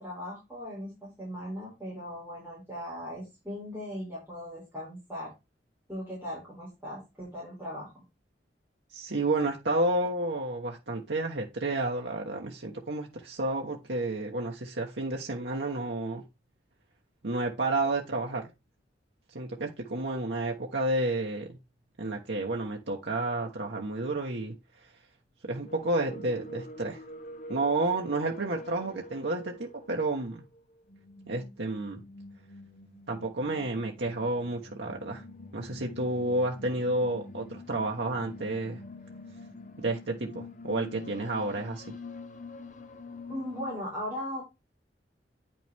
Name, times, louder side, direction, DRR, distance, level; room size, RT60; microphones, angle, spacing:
voice 1, 0.0-5.3 5.9-8.0 43.3-44.4, equal, 10° right, -6 dB, 4.6 m, -38 dB
voice 2, 8.9-16.2 17.2-18.5 19.3-21.5 22.0-24.5 25.4-27.0 27.5-30.4 31.3-32.0 33.1-35.2 35.5-38.8 39.8-41.9, right 2 dB, 85° right, 0 dB, 1.2 m, -31 dB
sound 1, 25.7-43.8, left 2 dB, 45° left, 1.0 m, -46 dB
9.3 x 5.9 x 3.5 m, 0.24 s
head